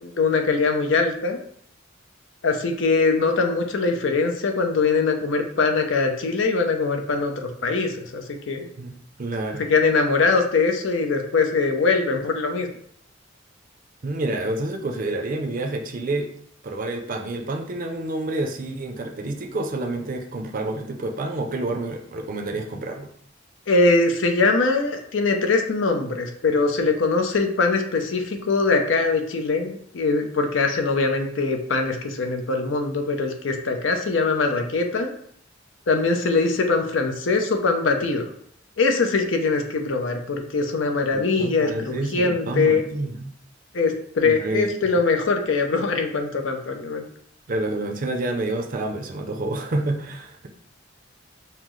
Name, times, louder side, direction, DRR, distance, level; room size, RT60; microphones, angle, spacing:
voice 1, 0.0-1.4 2.4-8.7 9.7-12.7 23.7-35.1 35.9-38.3 38.8-42.8 43.7-47.1, left 3 dB, 75° left, 4 dB, 0.6 m, -22 dB
voice 2, 8.8-9.7 14.0-16.3 16.6-23.1 41.1-43.3 44.2-44.7 47.5-50.5, right 2 dB, 45° right, 3 dB, 0.5 m, -28 dB
5.6 x 2.0 x 3.1 m, 0.64 s
head